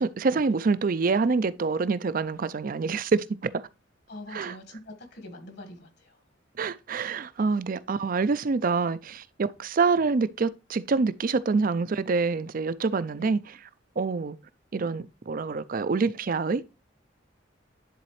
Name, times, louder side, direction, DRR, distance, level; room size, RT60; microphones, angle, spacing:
voice 1, 0.0-3.2 3.5-3.6 4.3-4.6 6.6-13.6 14.0-14.4 14.7-16.6, right 4 dB, 45° right, 0.4 m, -26 dB
voice 2, 4.1-6.2 13.2-13.3, left 1 dB, 60° left, 1.7 m, -44 dB
10.5 x 4.1 x 3.1 m
head